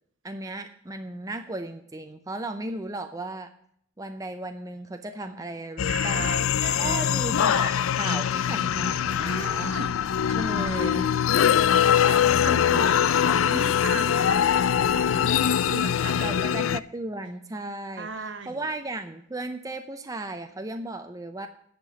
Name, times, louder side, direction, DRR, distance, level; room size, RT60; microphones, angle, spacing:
voice 1, 0.2-3.5 4.0-6.4 6.8-9.7 10.3-11.1 16.2-21.5, right 2 dB, 15° right, 7 dB, 0.6 m, -35 dB
sound 1, 5.8-16.8, left 9 dB, 75° left, 0.4 m, -23 dB
voice 2, 5.8-7.1 9.2-9.9 10.3-11.0 11.4-16.6 18.0-18.7, right 3 dB, 65° right, 8 dB, 1.4 m, -37 dB
10.0 x 6.1 x 8.7 m, 0.67 s
head